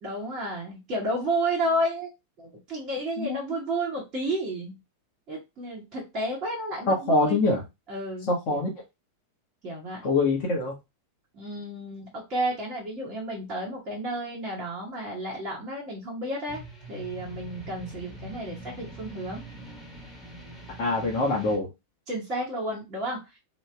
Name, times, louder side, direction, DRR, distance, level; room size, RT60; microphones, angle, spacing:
voice 1, 0.0-2.1 2.4-4.8 5.3-7.4 7.9-8.6 9.6-10.1 11.3-16.6 16.9-19.4 22.1-23.2, right 1 dB, 35° right, -3 dB, 1.3 m, -31 dB
voice 2, 6.9-7.6 8.3-8.7 10.0-10.7 20.8-21.7, left 2 dB, 40° left, -1 dB, 1.2 m, -24 dB
sound 1, 16.5-21.6, right 1 dB, 5° left, 1.6 m, -43 dB
3.0 x 2.9 x 3.3 m, 0.22 s
figure-of-eight pair, 90°, 0 cm